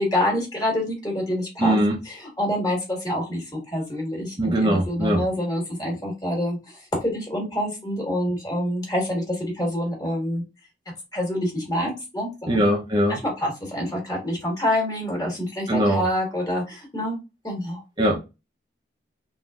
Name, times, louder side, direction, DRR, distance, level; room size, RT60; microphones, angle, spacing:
voice 1, 0.0-1.8 2.0-10.4 11.1-12.6 13.1-17.2 17.4-17.8, left 1 dB, 20° left, 1.5 m, -27 dB
voice 2, 1.6-1.9 4.4-5.2 12.5-13.2 15.7-16.0 18.0-18.2, right 1 dB, 25° right, 0.5 m, -21 dB
3.7 x 2.5 x 2.3 m
head